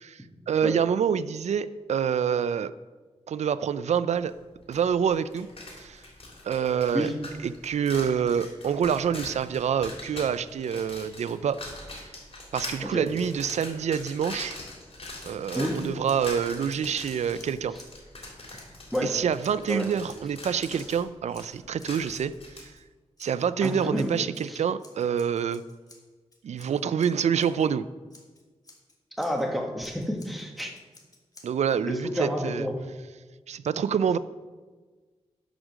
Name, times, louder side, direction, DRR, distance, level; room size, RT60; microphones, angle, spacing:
voice 1, 0.0-2.7 3.3-4.3 4.7-5.5 5.8-6.0 6.4-7.1 7.4-11.6 12.0-12.1 12.5-14.6 15.2-17.7 19.0-22.3 22.6-22.7 23.2-25.6 26.4-27.8 31.4-32.6 33.5-34.2, right 7 dB, 85° right, 14 dB, 0.4 m, -27 dB
sound 1, 4.7-4.8 5.1-22.6, left 2 dB, 60° left, 3.4 m, -42 dB
Scissors, 15.0-15.8 16.0-19.7 20.1-21.0 21.3-22.8 23.2-27.7 28.1-29.4 29.8-31.8, left 2 dB, 35° left, 1.7 m, -54 dB
voice 2, 23.6-24.1 24.5-24.6 29.2-30.7 31.8-32.7, equal, ahead, 1 dB, 1.6 m, -29 dB
11.0 x 5.1 x 6.3 m, 1.3 s
wide cardioid pair, 90°, 11 cm